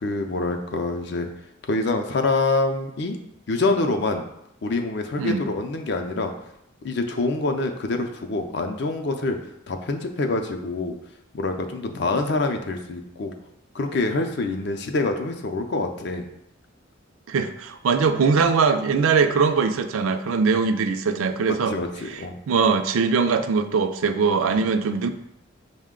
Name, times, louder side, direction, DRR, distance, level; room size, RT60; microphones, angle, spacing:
voice 1, 0.0-1.3 1.7-3.2 3.5-4.2 4.6-6.3 6.8-9.4 9.7-11.0 11.3-13.3 13.7-16.3 21.5-22.4 24.5-24.7, left 3 dB, 55° left, 6 dB, 0.4 m, -26 dB
voice 2, 5.2-5.5 17.3-21.8 22.1-22.2 22.5-25.1, right 5 dB, 85° right, 8 dB, 0.4 m, -21 dB
5.7 x 2.1 x 3.6 m, 0.81 s
head